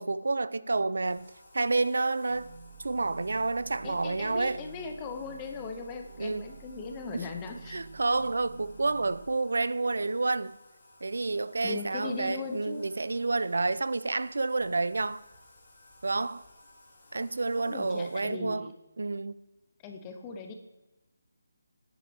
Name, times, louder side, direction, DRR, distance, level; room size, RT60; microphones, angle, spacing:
voice 1, 0.0-2.5 2.8-4.6 6.2-6.4 7.1-7.2 7.7-10.6 11.0-15.2 16.0-16.4 17.1-18.7 19.0-19.4, right 3 dB, 65° right, 0.3 m, -29 dB
Bathtub (filling or washing), 1.0-18.3, left 1 dB, 30° left, 3.3 m, -58 dB
sound 1, 2.3-9.3, right 4 dB, 25° right, 1.4 m, -49 dB
voice 2, 3.8-7.8 11.6-12.8 17.6-18.7 19.8-20.5, left 4 dB, 10° left, 0.5 m, -39 dB
9.8 x 7.9 x 3.4 m
hypercardioid pair, 180°, 0 cm